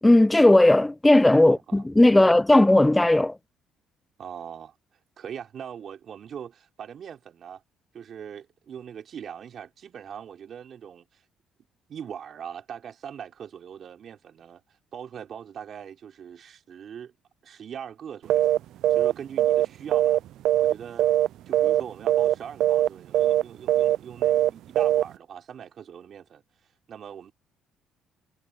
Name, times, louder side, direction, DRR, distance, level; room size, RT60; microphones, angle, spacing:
voice 1, 0.0-3.4, left 1 dB, 10° left, 0.5 m, -17 dB
voice 2, 1.4-1.8 2.2-2.4 4.2-4.7 5.2-7.6 7.9-11.2 11.9-14.6 14.9-17.1 17.4-18.5 18.9-20.2 20.6-21.1 21.5-26.4 26.9-27.3, right 8 dB, 50° right, 4.7 m, -41 dB
sound 1, 18.3-18.6 18.8-19.1 19.4-20.7 21.0-21.3 21.5-21.8 22.1-22.3 22.6-22.9 23.1-23.4 23.7-24.0 24.2-24.5 24.8-25.0, right 13 dB, 70° right, 0.4 m, -21 dB
cardioid pair, 90°, 0 cm